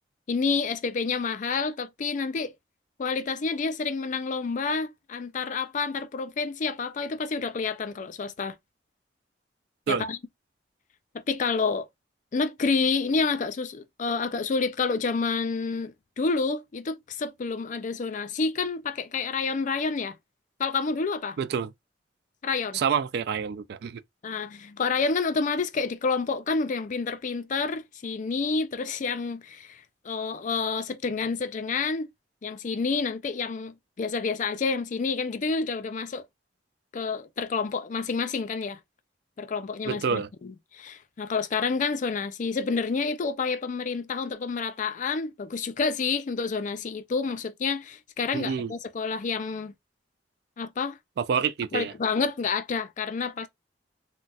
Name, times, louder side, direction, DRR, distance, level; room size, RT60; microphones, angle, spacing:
voice 1, 0.3-2.5 3.0-8.6 9.9-10.2 11.1-11.9 12.3-20.2 20.6-21.4 22.4-22.8 24.2-32.1 32.4-36.3 36.9-38.8 39.4-49.7 50.6-51.0 51.7-53.5, left 4 dB, 45° left, 0.4 m, -29 dB
voice 2, 21.4-21.7 22.7-24.0 39.9-40.3 48.3-48.7 51.2-51.9, right 6 dB, 65° right, 0.3 m, -27 dB
2.3 x 2.1 x 3.9 m
head